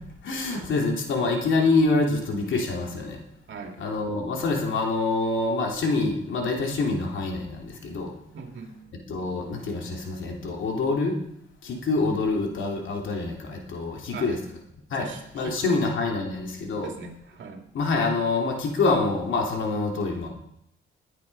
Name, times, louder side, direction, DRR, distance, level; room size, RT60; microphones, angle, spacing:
voice 1, 0.2-3.2 3.8-8.1 9.1-11.2 11.6-14.4 14.9-15.1 15.3-16.9 17.7-20.3, left 3 dB, 75° left, 1 dB, 3.1 m, -26 dB
voice 2, 8.3-8.8 14.1-14.4 15.0-15.9 16.8-17.6, right 4 dB, 75° right, 4 dB, 2.5 m, -37 dB
21.0 x 8.8 x 5.5 m, 0.78 s
cardioid pair, 85°, 20 cm